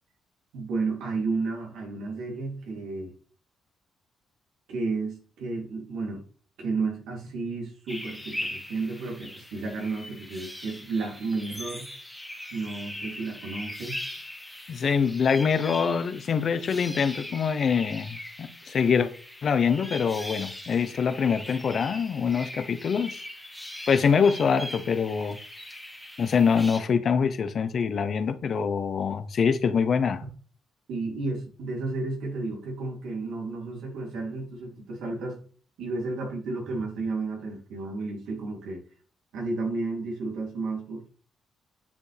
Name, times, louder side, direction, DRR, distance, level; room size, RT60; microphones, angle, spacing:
voice 1, 0.5-3.1 4.7-6.2 6.6-11.9 12.5-14.0 30.9-35.4 35.8-38.8 39.3-41.1, right 3 dB, 85° right, 3.0 m, -32 dB
sound 1, 7.9-26.8, left 1 dB, ahead, 1.6 m, -40 dB
voice 2, 14.7-19.1 19.4-23.2 23.9-25.4 26.2-30.2, left 6 dB, 50° left, 0.9 m, -24 dB
9.6 x 7.0 x 3.4 m
cardioid pair, 90°, 0 cm